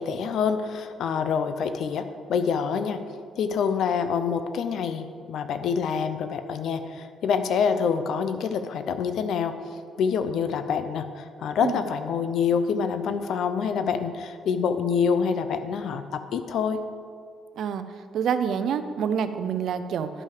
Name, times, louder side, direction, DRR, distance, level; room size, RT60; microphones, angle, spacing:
voice 1, 0.0-3.0 3.4-9.5 10.0-16.8, left 6 dB, 75° left, 10 dB, 0.6 m, -26 dB
voice 2, 18.1-20.1, right 7 dB, 70° right, 10 dB, 0.5 m, -27 dB
10.5 x 5.5 x 4.9 m, 2.3 s
cardioid pair, 90°, 0 cm